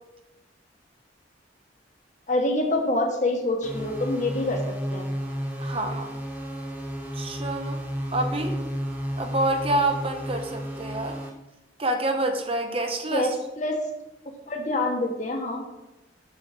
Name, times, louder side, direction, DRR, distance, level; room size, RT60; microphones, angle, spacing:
voice 1, 2.3-4.6 4.9-5.1 13.1-13.8 14.5-15.6, left 2 dB, 40° left, 3 dB, 1.4 m, -26 dB
sound 1, 3.6-11.3, equal, 10° right, 1.4 m, -32 dB
voice 2, 5.6-6.1 7.2-7.8 8.1-8.6 9.2-11.2 11.8-13.4, right 1 dB, 30° right, 5 dB, 0.9 m, -27 dB
6.8 x 6.3 x 5.1 m, 0.96 s
head